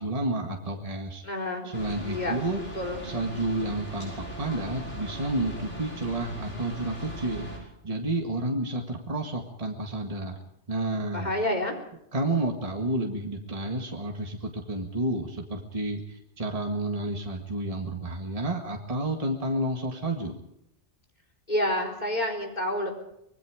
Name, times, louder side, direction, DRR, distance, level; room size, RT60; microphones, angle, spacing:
voice 1, 0.0-1.2 1.6-2.6 3.0-10.4 10.7-11.3 12.1-20.4, right 2 dB, 30° right, 2 dB, 2.0 m, -30 dB
voice 2, 1.2-1.7 2.0-2.3 2.7-3.0 11.1-11.8 21.5-22.9, left 1 dB, 35° left, 2 dB, 4.1 m, -28 dB
sound 1, 1.7-7.6, right 1 dB, 80° left, 6.4 m, -39 dB
25.5 x 20.5 x 5.1 m, 0.78 s
omnidirectional pair, 1.2 m